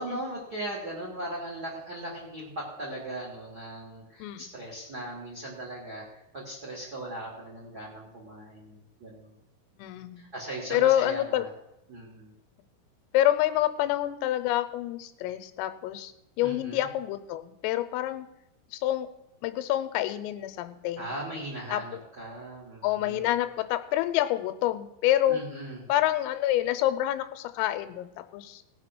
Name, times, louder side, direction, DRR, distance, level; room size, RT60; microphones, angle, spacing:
voice 1, 0.0-6.0 6.3-9.3 10.2-11.5 11.9-12.3 16.4-16.9 21.0-23.3 25.3-25.8, right 1 dB, 30° right, -3 dB, 1.9 m, -38 dB
voice 2, 4.2-4.5 9.8-10.2 10.7-11.5 13.1-16.1 16.4-18.3 18.7-19.1 19.4-21.1 21.7-22.0 22.8-25.4 25.9-28.6, left 13 dB, 90° left, 10 dB, 3.4 m, -27 dB
17.5 x 6.5 x 6.1 m, 0.86 s
omnidirectional pair, 5.9 m